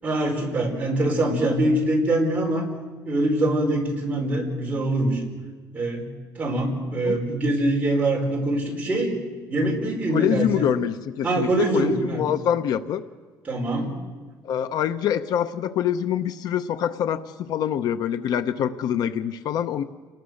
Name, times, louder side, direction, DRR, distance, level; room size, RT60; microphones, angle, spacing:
voice 1, 0.0-2.7 3.0-5.2 5.7-6.1 6.3-9.1 9.5-10.7 11.2-12.2 13.4-13.9, right 1 dB, 20° right, -2 dB, 4.9 m, -23 dB
voice 2, 10.1-13.0 14.4-19.8, left 9 dB, 55° left, 11 dB, 0.8 m, -25 dB
29.5 x 20.0 x 6.5 m, 1.5 s
cardioid pair, 175°, 8 cm